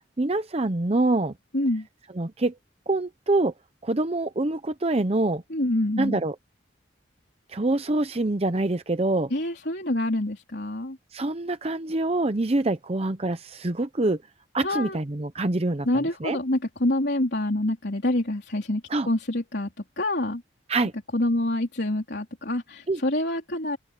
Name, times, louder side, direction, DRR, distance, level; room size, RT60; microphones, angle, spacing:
voice 1, 0.2-1.3 2.1-2.6 2.9-3.5 3.8-5.4 6.0-6.3 7.5-9.3 11.1-14.2 14.5-16.4 18.9-19.1 20.7-20.9 22.9-23.0, right 2 dB, 35° right, 0.7 m, -25 dB
voice 2, 1.5-1.9 5.5-6.2 9.3-11.0 14.6-15.0 15.9-18.8 19.1-19.7 20.0-20.4 21.1-23.8, left 1 dB, 60° left, 3.7 m, -26 dB
head